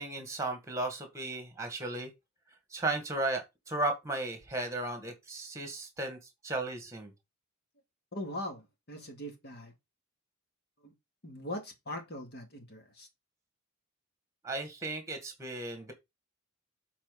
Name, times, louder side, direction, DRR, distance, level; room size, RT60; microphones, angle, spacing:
voice 1, 0.0-2.1 2.7-6.2 6.4-7.1 14.4-15.9, right 2 dB, 15° right, 2.0 m, -35 dB
voice 2, 8.1-9.7 10.8-10.9 11.2-13.1, left 1 dB, 45° left, 2.0 m, -41 dB
7.4 x 4.2 x 5.4 m
head